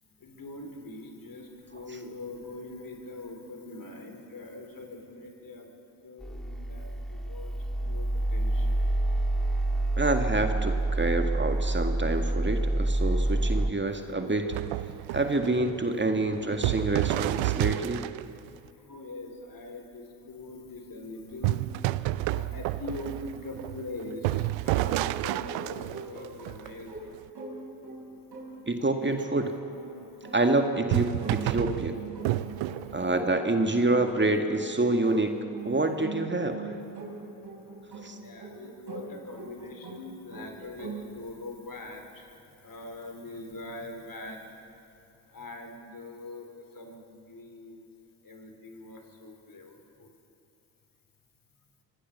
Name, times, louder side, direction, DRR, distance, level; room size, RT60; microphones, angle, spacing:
voice 1, 0.2-5.7 6.0-7.5 7.8-8.7 13.8-14.0 14.9-15.0 18.4-21.6 22.2-27.1 31.4-31.5 32.2-33.1 38.2-44.4 45.3-47.9 48.2-50.1, left 2 dB, 45° left, 4 dB, 4.2 m, -43 dB
sound 1, 6.2-13.7, right 2 dB, ahead, 2.3 m, -27 dB
voice 2, 10.0-14.5 15.1-18.0 28.7-29.5 30.3-32.0 32.9-35.3 35.6-36.8 38.0-38.2, right 2 dB, 25° right, 5 dB, 2.0 m, -27 dB
sound 2, 14.5-18.5 21.4-27.2 30.8-33.1, right 17 dB, 75° right, 0.7 m, -30 dB
sound 3, 25.0-41.0, right 4 dB, 55° right, 6.2 m, -43 dB
25.0 x 18.0 x 6.9 m, 2.9 s
hypercardioid pair, 45°, 46 cm